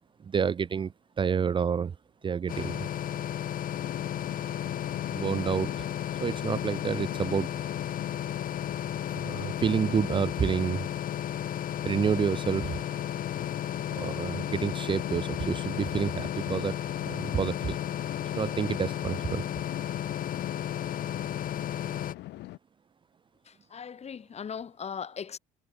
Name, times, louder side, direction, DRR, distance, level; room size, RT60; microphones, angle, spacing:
voice 1, 0.2-2.0 2.2-2.9 5.1-5.9 6.2-7.5 9.1-10.9 11.8-12.8 13.9-16.8 17.0-17.8 18.2-19.4, right 6 dB, 30° right, 0.6 m, -29 dB
sound 1, 2.5-22.1, left 10 dB, 55° left, 2.9 m, -33 dB
sound 2, 3.7-22.6, left 17 dB, 80° left, 2.5 m, -44 dB
voice 2, 23.7-25.4, left 7 dB, 40° left, 3.9 m, -38 dB
cardioid pair, 110°, 17 cm